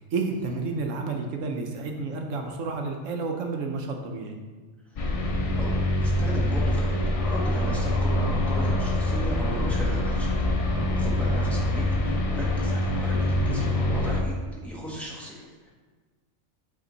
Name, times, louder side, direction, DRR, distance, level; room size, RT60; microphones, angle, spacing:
voice 1, 0.0-4.4 11.1-11.6, right 4 dB, 75° right, 3 dB, 1.1 m, -31 dB
sound 1, 5.0-14.2, left 1 dB, 65° left, 0.3 m, -25 dB
voice 2, 5.6-6.9 7.2-10.3 10.9-15.7, equal, ahead, -5 dB, 1.2 m, -37 dB
sound 2, 8.3-13.6, left 2 dB, 30° right, 1.0 m, -41 dB
7.8 x 3.5 x 4.0 m, 1.4 s
omnidirectional pair, 1.4 m